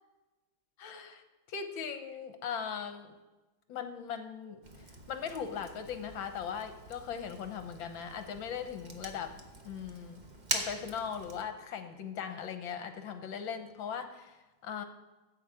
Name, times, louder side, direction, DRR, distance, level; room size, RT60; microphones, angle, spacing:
voice 1, 0.8-1.2 1.5-3.1 3.7-4.6 5.1-9.4 9.6-10.2 10.5-14.4 14.6-14.8, left 7 dB, 70° left, 8 dB, 1.7 m, -39 dB
Fire, 4.6-11.4, right 2 dB, 30° right, 0.9 m, -43 dB
14.0 x 8.3 x 4.9 m, 1.1 s
omnidirectional pair, 2.2 m